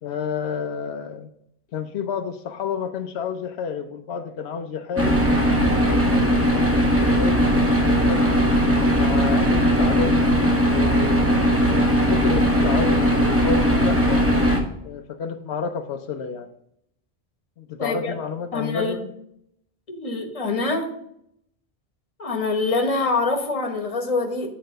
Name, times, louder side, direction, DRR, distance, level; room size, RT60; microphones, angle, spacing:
voice 1, 0.0-1.3 1.7-5.2 5.6-6.9 7.1-8.4 8.9-11.3 12.1-14.3 14.8-16.5 17.6-19.1, left 6 dB, 85° left, 7 dB, 0.9 m, -30 dB
sound 1, 5.0-14.6, equal, 15° right, 1.2 m, -19 dB
voice 2, 17.8-18.2 18.5-19.0 19.9-20.9 22.2-24.5, left 3 dB, 35° left, 4 dB, 1.2 m, -25 dB
8.4 x 3.3 x 6.5 m, 0.73 s
omnidirectional pair, 1.1 m